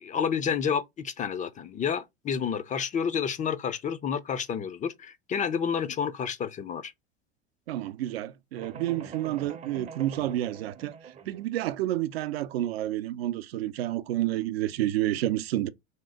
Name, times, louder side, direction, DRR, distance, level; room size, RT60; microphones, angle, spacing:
voice 1, 0.0-6.9, left 7 dB, 25° left, 0.4 m, -30 dB
voice 2, 7.7-10.9 11.3-15.7, right 14 dB, 70° right, 0.6 m, -29 dB
sound 1, 8.5-11.4, right 6 dB, 20° right, 0.6 m, -44 dB
3.7 x 2.9 x 4.8 m
hypercardioid pair, 80°, 31 cm